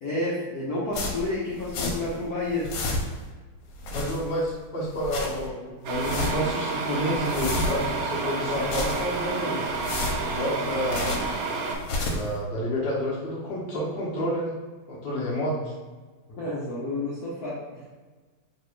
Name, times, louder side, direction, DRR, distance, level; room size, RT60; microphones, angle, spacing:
voice 1, 0.0-2.7 16.3-17.8, left 2 dB, 65° left, -8 dB, 1.0 m, -30 dB
sound 1, 0.9-2.2 2.5-3.3 3.7-4.5 4.8-5.5 5.9-6.6 6.9-8.0 8.5-9.3 9.7-11.4 11.7-12.4, left 2 dB, 85° left, 1.4 m, -31 dB
voice 2, 3.9-9.6 10.2-11.1 12.1-14.5 14.9-15.7, equal, 40° left, -7 dB, 0.9 m, -29 dB
sound 2, 5.8-11.8, right 3 dB, 90° right, 1.4 m, -30 dB
3.2 x 2.9 x 3.0 m, 1.3 s
omnidirectional pair, 2.2 m